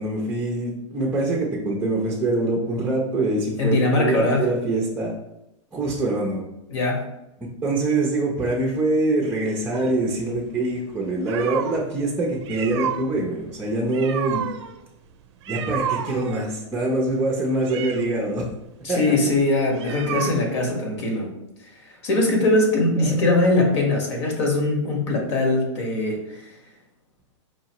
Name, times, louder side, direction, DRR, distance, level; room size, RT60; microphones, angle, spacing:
voice 1, 0.0-5.2 5.7-6.5 7.6-14.4 15.5-18.5 18.9-19.1 23.0-23.2, right 2 dB, 10° right, -2 dB, 0.6 m, -24 dB
voice 2, 3.6-4.4 6.7-7.0 18.8-21.3 22.0-26.4, left 2 dB, 60° left, 1 dB, 1.4 m, -21 dB
sound 1, 9.7-11.8 12.3-20.7, right 9 dB, 55° right, 0.5 m, -32 dB
4.9 x 2.6 x 2.9 m, 0.88 s
hypercardioid pair, 145°, 16 cm